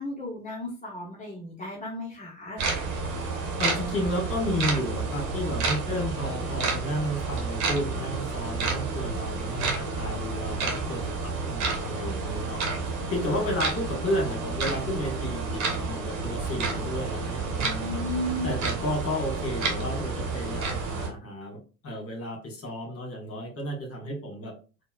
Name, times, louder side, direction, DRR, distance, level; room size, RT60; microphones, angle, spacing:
voice 1, 0.0-2.6 17.5-18.5, left 1 dB, 20° left, -4 dB, 0.9 m, -34 dB
sound 1, 2.6-21.1, right 4 dB, 45° right, 1.2 m, -30 dB
voice 2, 3.6-18.0 18.4-24.5, left 1 dB, 35° left, 1 dB, 1.7 m, -32 dB
4.1 x 2.3 x 2.4 m, 0.35 s
figure-of-eight pair, 65°, 39 cm